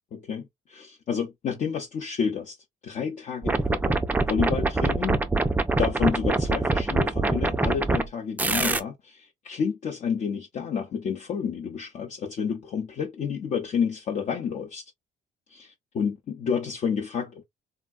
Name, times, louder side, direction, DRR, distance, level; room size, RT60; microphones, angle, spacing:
voice 1, 0.1-2.6 2.8-5.2 5.8-14.9 15.5-17.5, left 7 dB, 45° left, 0.7 m, -30 dB
sound 1, 3.4-8.0 8.4-8.8, right 2 dB, 10° right, 0.4 m, -24 dB
3.6 x 2.2 x 2.3 m
cardioid pair, 110°, 17 cm